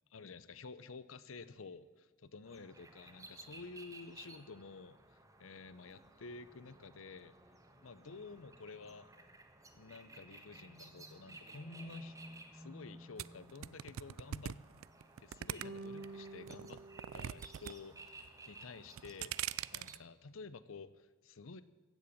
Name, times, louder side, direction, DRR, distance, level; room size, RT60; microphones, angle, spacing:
voice 1, 0.1-7.3 7.8-9.1 9.7-12.1 12.5-14.6 15.2-16.8 17.1-21.6, left 4 dB, 85° left, 15 dB, 0.7 m, -51 dB
sound 1, 2.4-19.9, right 2 dB, 15° right, 1.5 m, -56 dB
sound 2, 13.2-16.1 16.5-17.7 18.0-18.5 18.9-20.0, right 10 dB, 85° right, 0.4 m, -41 dB
sound 3, 15.6-18.2, right 2 dB, 50° right, 1.6 m, -50 dB
15.5 x 7.9 x 8.5 m, 1.4 s
head